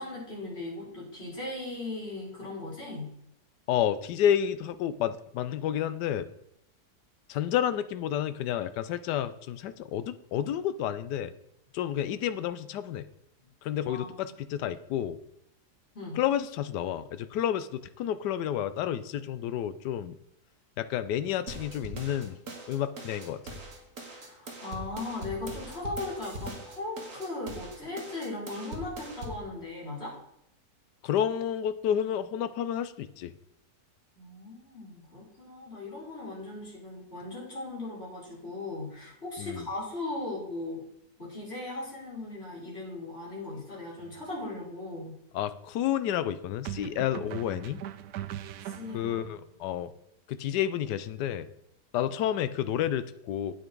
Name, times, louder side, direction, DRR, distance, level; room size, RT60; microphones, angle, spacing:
voice 1, 0.0-3.2 13.9-14.3 15.9-16.2 24.1-30.2 34.1-40.8 41.2-45.2 48.6-49.4, left 2 dB, 35° left, -6 dB, 5.0 m, -38 dB
voice 2, 3.7-6.3 7.3-11.3 11.7-13.1 13.6-15.2 16.1-20.1 20.8-22.4 22.7-23.4 31.0-33.3 39.4-39.6 45.3-47.8 48.9-49.9 50.3-51.5 51.9-53.5, left 10 dB, 80° left, 12 dB, 1.3 m, -30 dB
sound 1, 21.5-29.5, right 1 dB, 50° right, 2.1 m, -42 dB
sound 2, 44.0-44.2 46.6-49.3, right 11 dB, 70° right, 1.1 m, -40 dB
8.9 x 8.6 x 4.6 m, 0.78 s
omnidirectional pair, 1.8 m